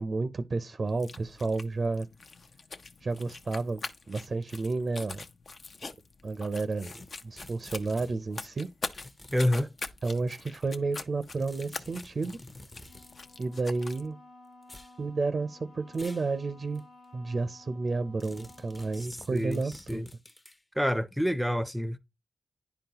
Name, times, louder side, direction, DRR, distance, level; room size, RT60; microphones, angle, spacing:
voice 1, 0.0-2.1 3.0-5.2 6.2-6.9 7.2-8.7 10.0-12.4 13.4-14.2 15.0-16.8 17.1-20.0, right 3 dB, 55° right, 0.5 m, -31 dB
sound 1, 0.9-14.1, left 4 dB, 55° left, 0.6 m, -44 dB
sound 2, 6.9-8.2 8.9-9.9 11.4-13.2 14.6-15.0 15.9-16.3 16.8-16.9 18.2-20.6, left 2 dB, 30° left, 0.8 m, -49 dB
voice 2, 9.3-9.7 18.9-20.1 20.8-22.0, equal, ahead, 0.6 m, -28 dB
Wind instrument woodwind instrument, 12.8-19.1, left 2 dB, 85° left, 1.6 m, -55 dB
10.0 x 3.8 x 2.9 m
cardioid pair, 50°, 0 cm